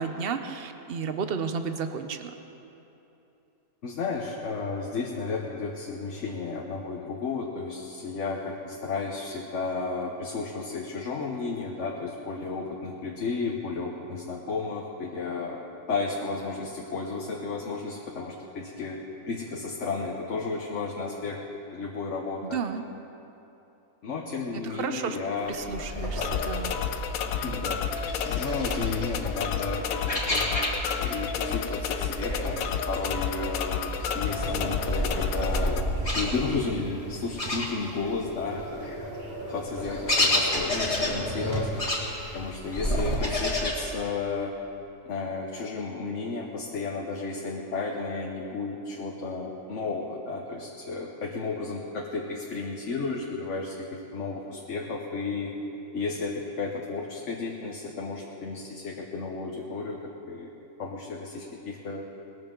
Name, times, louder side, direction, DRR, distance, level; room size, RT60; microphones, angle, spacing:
voice 1, 0.0-2.3 22.4-22.8 24.6-25.2 25.5-26.7, right 6 dB, 50° right, 8 dB, 0.8 m, -32 dB
voice 2, 3.8-19.0 19.3-21.4 21.7-22.6 24.0-25.5 27.4-27.8 28.2-35.9 36.1-38.9 39.5-41.7 42.3-44.5 45.1-55.5 55.9-60.5 60.8-62.0, left 4 dB, 60° left, 0 dB, 1.3 m, -33 dB
sound 1, 25.5-31.2 31.5-38.2 38.6-43.7, left 1 dB, 25° left, 2.0 m, -31 dB
sound 2, 26.2-35.8, left 6 dB, 80° left, 1.2 m, -31 dB
Tap, 34.3-41.8, equal, 30° right, 2.5 m, -37 dB
20.0 x 14.0 x 3.8 m, 3.0 s
omnidirectional pair, 1.5 m